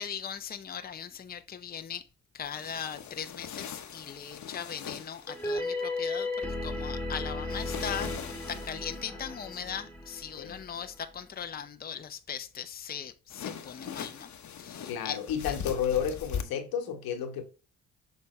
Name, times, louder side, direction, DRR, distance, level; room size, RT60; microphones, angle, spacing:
voice 1, 0.0-2.0 2.3-14.3 14.6-15.2, left 8 dB, 25° left, 0.7 m, -39 dB
sound 1, 2.4-5.6 7.5-9.0 13.3-16.4, left 8 dB, 55° left, 1.0 m, -41 dB
sound 2, 5.3-11.0, left 2 dB, 5° left, 1.8 m, -35 dB
voice 2, 10.4-10.7 14.9-17.4, left 8 dB, 80° left, 1.3 m, -32 dB
6.8 x 3.4 x 4.3 m
supercardioid pair, 65°, 35 cm